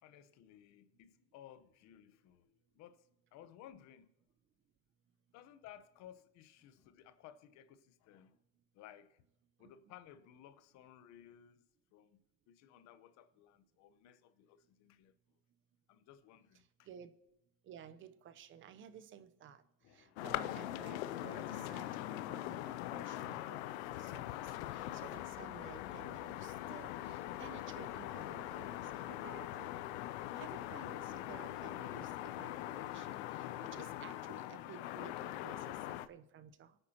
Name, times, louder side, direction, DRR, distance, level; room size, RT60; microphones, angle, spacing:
voice 1, 0.0-4.1 5.3-8.4 8.7-9.2 9.6-11.6 11.9-12.2 12.5-15.1 15.9-16.9 19.8-20.3, left 10 dB, 55° left, 1.0 m, -58 dB
voice 2, 17.7-19.6 19.9-24.2 24.7-29.8 30.3-36.8, right 8 dB, 40° right, 0.8 m, -55 dB
sound 1, 20.2-36.1, left 14 dB, 80° left, 0.6 m, -42 dB
26.5 x 9.1 x 2.9 m
supercardioid pair, 115°, 33 cm